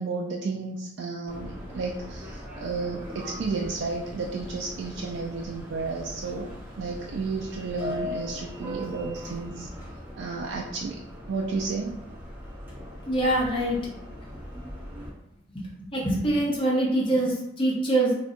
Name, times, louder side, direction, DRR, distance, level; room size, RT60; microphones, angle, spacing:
voice 1, 0.0-9.7 10.2-11.0 11.3-12.0, right 4 dB, 80° right, -1 dB, 0.3 m, -32 dB
Subway metro underground, 1.3-15.1, left 1 dB, 10° right, 0.7 m, -40 dB
voice 2, 13.1-13.8 15.8-18.2, right 1 dB, 30° left, -5 dB, 0.9 m, -24 dB
2.6 x 2.2 x 3.7 m, 0.87 s
head